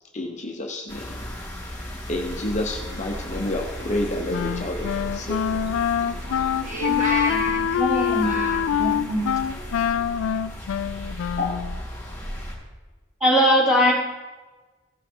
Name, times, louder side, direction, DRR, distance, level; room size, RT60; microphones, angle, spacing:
voice 1, 0.1-1.2 2.1-5.4 11.4-11.6, left 1 dB, 35° left, 2 dB, 0.9 m, -29 dB
sound 1, 0.9-12.5, equal, 15° left, 3.1 m, -35 dB
Wind instrument woodwind instrument, 4.3-11.8, left 8 dB, 90° left, 0.3 m, -25 dB
voice 2, 4.6-9.5, left 1 dB, 35° right, -3 dB, 2.3 m, -33 dB
voice 3, 7.8-9.3 13.2-13.9, equal, 5° right, -7 dB, 2.8 m, -21 dB
16.0 x 5.8 x 4.4 m, 1.3 s
head